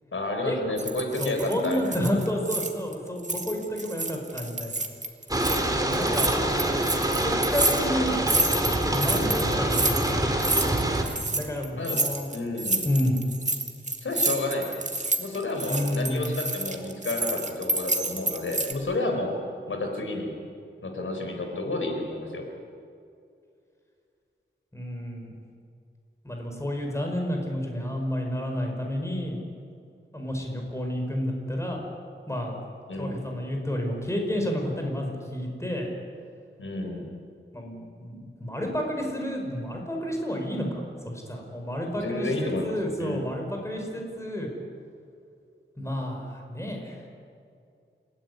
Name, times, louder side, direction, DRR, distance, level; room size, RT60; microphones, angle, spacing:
voice 1, 0.1-2.0 11.7-12.0 12.3-12.9 14.0-14.7 15.2-19.3 19.7-20.3 20.8-22.5 32.9-33.2 36.6-37.1 41.9-42.7 43.0-43.3, left 2 dB, 80° left, 3 dB, 4.5 m, -30 dB
sound 1, 0.8-2.9 3.2-5.6 5.9-18.7, right 2 dB, 35° right, 2.2 m, -29 dB
voice 2, 1.2-4.8 5.9-6.4 7.2-8.2 8.9-10.7 11.3-12.3 12.8-13.3 15.6-16.3 24.7-25.4 26.2-29.4 30.1-31.8 32.3-32.6 32.9-35.9 37.5-44.5 45.8-47.0, equal, 15° left, 1 dB, 5.3 m, -30 dB
sound 2, 5.3-11.0, right 1 dB, 20° right, 3.1 m, -25 dB
28.5 x 17.0 x 9.7 m, 2.4 s
wide cardioid pair, 100°, 20 cm